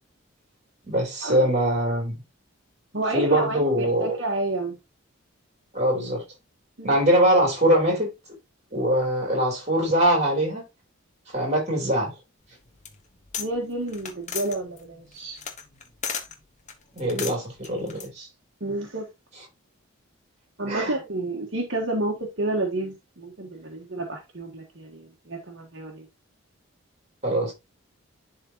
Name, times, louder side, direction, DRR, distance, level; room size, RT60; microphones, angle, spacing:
voice 1, 0.9-2.2 3.1-4.2 5.7-6.2 6.8-8.1 8.7-10.6 11.3-12.2 16.9-18.3 20.7-21.0 27.2-27.5, right 1 dB, 30° right, 3.5 m, -22 dB
voice 2, 2.9-4.8 6.8-7.0 13.4-15.4 18.6-19.1 20.6-26.0, right 2 dB, 60° right, 1.5 m, -30 dB
sound 1, 12.5-13.5 13.8-16.3 16.7-18.1, left 7 dB, 35° left, 1.1 m, -35 dB
11.0 x 3.9 x 2.9 m
head